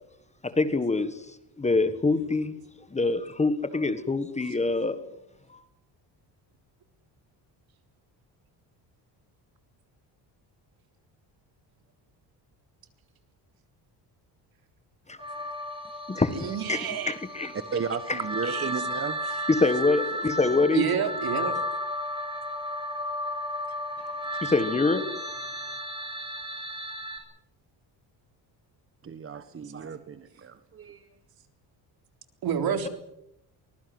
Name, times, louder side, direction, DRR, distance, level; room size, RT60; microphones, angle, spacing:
voice 1, 0.4-1.3 1.6-2.6 2.9-5.0 5.5-5.6 15.1-15.2 16.1-17.5 18.1-18.2 19.5-20.8 24.0-24.1 24.4-25.1, left 3 dB, 15° left, 1.5 m, -25 dB
sound 1, 15.2-27.2, equal, 10° right, 7.1 m, -34 dB
voice 2, 16.3-17.1 18.5-18.7 20.7-21.6 24.3-24.4 32.4-32.9, right 8 dB, 55° right, 3.7 m, -28 dB
voice 3, 17.7-19.2 29.0-31.1, right 6 dB, 30° right, 1.5 m, -34 dB
24.0 x 21.0 x 7.9 m
cardioid pair, 155°, 43 cm